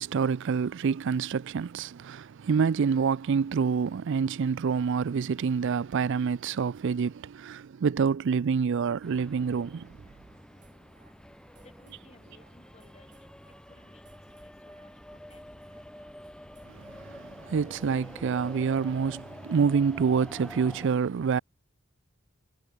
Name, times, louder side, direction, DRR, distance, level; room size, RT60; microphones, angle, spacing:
voice 1, 0.0-10.0 16.7-21.4, right 6 dB, 60° right, 0.4 m, -27 dB
sound 1, 9.0-20.9, equal, 5° left, 2.2 m, -48 dB
sound 2, 9.8-20.2, right 2 dB, 40° right, 7.7 m, -63 dB
voice 2, 11.8-14.0 14.4-15.5, left 2 dB, 30° left, 2.8 m, -60 dB
head